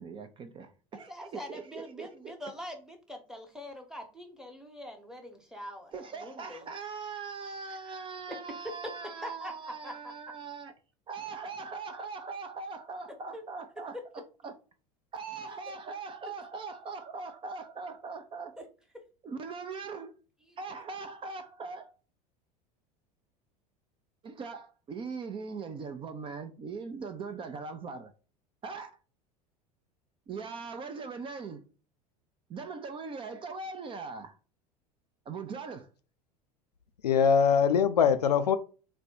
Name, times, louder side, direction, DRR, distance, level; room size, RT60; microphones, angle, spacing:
voice 1, 0.0-2.3 5.9-10.7 11.1-14.5 15.1-18.5 19.2-20.1 20.6-21.9 24.2-28.1 28.6-28.9 30.3-31.6 32.5-34.4 35.3-35.9, right 4 dB, 25° right, 0.5 m, -40 dB
voice 2, 0.9-6.7 7.7-10.1 13.3-13.4 13.9-14.0 18.6-18.7 18.9-19.0 20.5-20.6, equal, 5° right, 1.0 m, -43 dB
voice 3, 37.0-38.6, left 7 dB, 75° left, 0.4 m, -22 dB
4.2 x 2.2 x 4.2 m
figure-of-eight pair, 75°, 20 cm